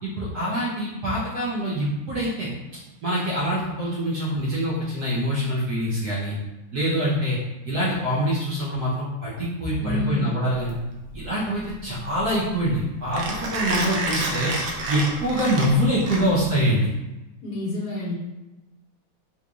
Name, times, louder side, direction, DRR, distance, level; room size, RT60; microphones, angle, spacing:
voice 1, 0.0-2.5 3.0-6.4 6.7-7.4 7.7-10.7 11.1-14.5 14.9-16.9, equal, 65° right, -7 dB, 1.2 m, -25 dB
voice 2, 9.8-10.2 13.6-14.2 17.4-18.1, left 2 dB, 60° left, -6 dB, 1.2 m, -30 dB
Mechanisms, 10.5-16.6, right 2 dB, 85° right, 1.5 m, -30 dB
3.8 x 3.1 x 2.3 m, 1.0 s
omnidirectional pair, 2.1 m